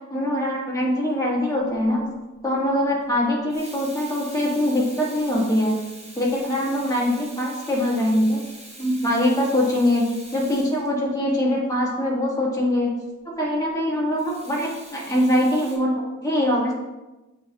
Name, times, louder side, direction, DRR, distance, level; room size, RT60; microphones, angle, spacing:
voice 1, 0.1-2.1 2.4-5.7 6.1-8.4 8.8-10.0 10.3-13.0 13.4-16.7, left 1 dB, 10° left, -5 dB, 1.4 m, -23 dB
Water tap faucet / Sink (filling or washing), 1.7-2.0 3.3-11.5 14.2-15.8, right 1 dB, 20° right, 0.9 m, -44 dB
7.4 x 2.9 x 2.3 m, 1.1 s
wide cardioid pair, 60°, 31 cm